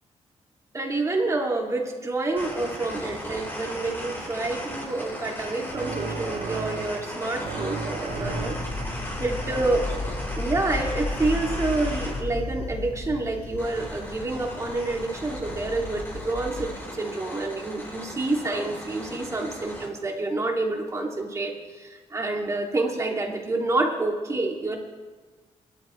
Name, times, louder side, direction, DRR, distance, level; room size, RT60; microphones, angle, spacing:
voice 1, 0.7-8.6 9.2-9.8 10.4-24.8, right 2 dB, 25° right, 0 dB, 2.7 m, -28 dB
sound 1, 2.4-12.2 13.6-19.9, equal, 20° left, 4.6 m, -37 dB
sound 2, 5.7-7.1 7.4-8.9, right 5 dB, 60° right, 1.2 m, -34 dB
sound 3, 8.1-16.7, left 2 dB, 55° left, 5.5 m, -34 dB
23.5 x 13.0 x 3.3 m, 1.4 s
cardioid pair, 110°, 12 cm